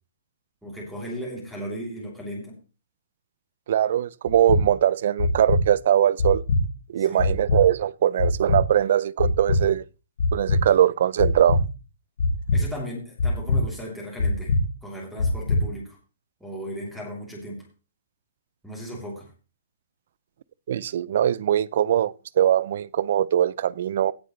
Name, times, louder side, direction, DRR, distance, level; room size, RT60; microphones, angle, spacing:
voice 1, 0.6-2.6 7.0-7.3 12.5-14.5 14.8-16.0 16.4-17.6 18.6-19.3, equal, ahead, 3.1 m, -36 dB
voice 2, 3.7-6.4 6.9-9.8 10.3-11.6 20.7-24.1, right 10 dB, 50° right, 0.4 m, -21 dB
sound 1, 4.3-4.6 5.2-5.6 6.2-6.6 7.2-7.6 8.2-8.6 9.2-9.6 10.2-10.6 11.2-11.6 12.2-12.6 13.2-13.6 14.2-14.6 15.2-15.6, left 3 dB, 70° left, 3.3 m, -21 dB
17.0 x 7.8 x 3.2 m
hypercardioid pair, 170°, 0 cm